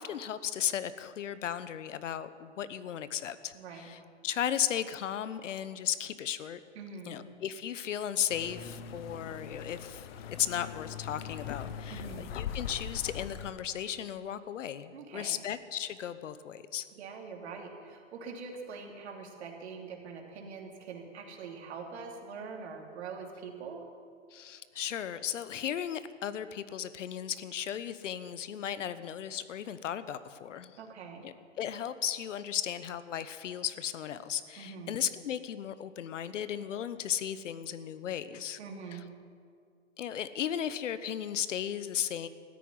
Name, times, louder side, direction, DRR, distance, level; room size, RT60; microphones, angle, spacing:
voice 1, 0.0-6.6 7.1-10.1 10.4-16.9 24.3-30.8 31.2-38.6 38.9-39.0 40.0-42.3, left 9 dB, 75° left, 14 dB, 1.0 m, -35 dB
voice 2, 3.5-3.9 6.7-7.2 11.9-12.3 14.9-15.4 16.9-23.8 30.8-31.3 34.6-35.0 38.6-39.1, right 5 dB, 60° right, 2 dB, 3.0 m, -44 dB
sound 1, 8.3-13.5, left 8 dB, 50° left, 1.1 m, -41 dB
14.0 x 9.9 x 9.6 m, 2.2 s
hypercardioid pair, 145°, 37 cm